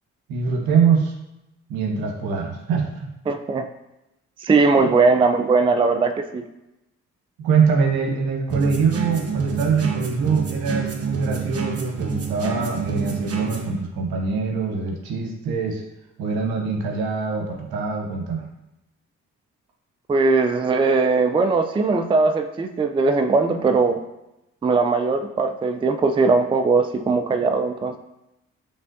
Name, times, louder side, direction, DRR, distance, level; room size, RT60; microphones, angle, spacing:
voice 1, 0.3-1.1 1.7-3.1 7.4-15.8 16.2-18.5, right 5 dB, 75° right, 1 dB, 1.0 m, -23 dB
voice 2, 3.3-3.7 4.4-6.4 20.1-24.0 24.6-28.0, right 4 dB, 15° right, 7 dB, 0.4 m, -19 dB
sound 1, 8.5-13.7, right 5 dB, 40° right, 0.9 m, -28 dB
5.3 x 3.2 x 2.6 m, 0.91 s
hypercardioid pair, 45°, 37 cm